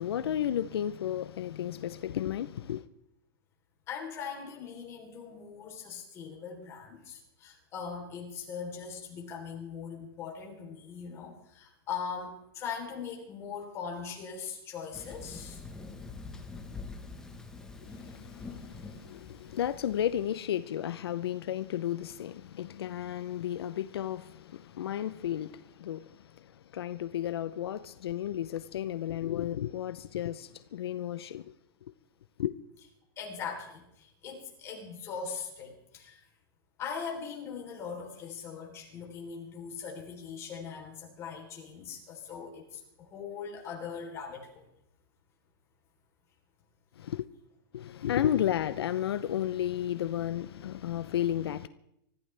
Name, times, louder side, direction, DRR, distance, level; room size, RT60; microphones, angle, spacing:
voice 1, 0.0-2.8 17.8-31.5 32.4-32.5 47.0-47.3 47.7-51.7, left 11 dB, 85° left, 0.7 m, -33 dB
voice 2, 3.9-15.6 33.2-36.2 36.8-44.7, left 6 dB, 20° left, 3.5 m, -40 dB
Thunder, 14.9-20.3, left 3 dB, 5° left, 1.2 m, -45 dB
24.5 x 14.0 x 3.4 m
supercardioid pair, 170°, 13 cm